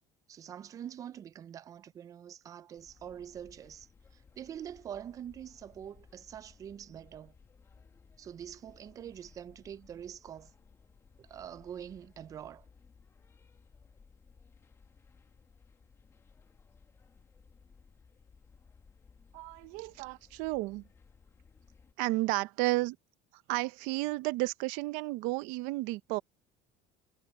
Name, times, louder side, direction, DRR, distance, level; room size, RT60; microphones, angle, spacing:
voice 1, 0.3-7.3 8.2-10.5 11.2-12.6, right 9 dB, 25° right, 0.4 m, -45 dB
sound 1, 2.8-21.9, left 5 dB, 20° left, 1.1 m, -60 dB
voice 2, 19.3-20.8 22.0-23.0 23.5-26.2, right 21 dB, 70° right, 0.8 m, -32 dB
cardioid pair, 165°, 14 cm